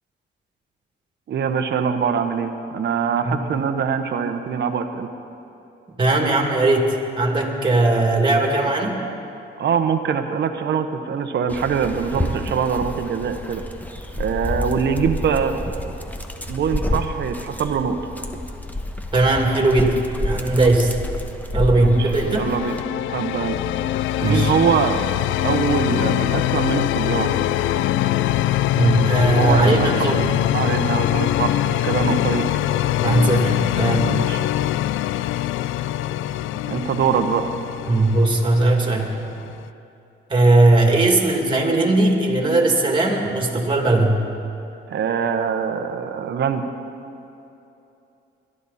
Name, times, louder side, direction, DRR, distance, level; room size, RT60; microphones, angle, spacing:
voice 1, 1.3-5.1 9.6-13.6 14.2-15.9 16.4-18.0 21.8-22.8 23.1-23.6 24.2-25.0 25.4-27.3 29.3-30.1 30.5-32.5 34.0-34.4 36.6-37.5 44.9-46.7, right 7 dB, 60° right, 7 dB, 1.1 m, -23 dB
voice 2, 3.2-3.5 6.0-9.0 19.1-21.0 21.5-22.5 24.2-24.5 28.7-30.3 33.0-34.1 37.9-39.2 40.3-44.2, right 2 dB, 25° right, 1 dB, 2.5 m, -18 dB
Dog, 11.5-22.8, left 1 dB, 10° left, 1.1 m, -29 dB
sound 1, 21.9-39.7, left 13 dB, 80° left, 0.4 m, -23 dB
21.0 x 12.5 x 4.2 m, 2.8 s
cardioid pair, 90°, 20 cm